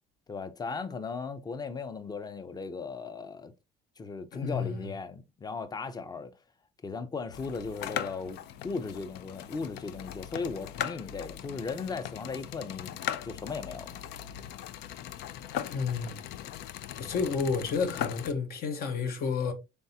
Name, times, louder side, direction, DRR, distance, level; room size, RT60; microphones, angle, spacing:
voice 1, 0.3-3.5 4.0-6.3 6.8-8.4 8.6-13.0 13.2-13.9, left 4 dB, 25° left, 0.5 m, -37 dB
voice 2, 4.3-4.9 15.7-16.2 16.9-19.5, left 5 dB, 65° left, 0.9 m, -31 dB
sound 1, 7.3-18.3, left 11 dB, 80° left, 0.4 m, -39 dB
4.0 x 3.5 x 2.8 m
cardioid pair, 110°, 17 cm